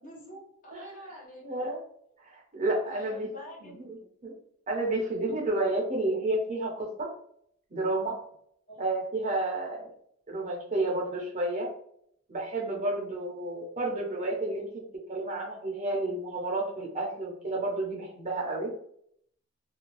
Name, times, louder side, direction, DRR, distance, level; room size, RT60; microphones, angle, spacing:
voice 1, 0.0-1.6 2.9-4.1 8.7-8.8, equal, 40° left, -2 dB, 1.0 m, -47 dB
voice 2, 1.4-1.8 2.2-3.3 3.6-3.7 4.2-4.3 4.7-7.1 7.7-8.2 8.8-9.9 10.3-11.7 12.3-14.8 15.1-18.7, right 2 dB, 35° right, -1 dB, 0.7 m, -31 dB
2.6 x 2.2 x 3.1 m, 0.68 s
head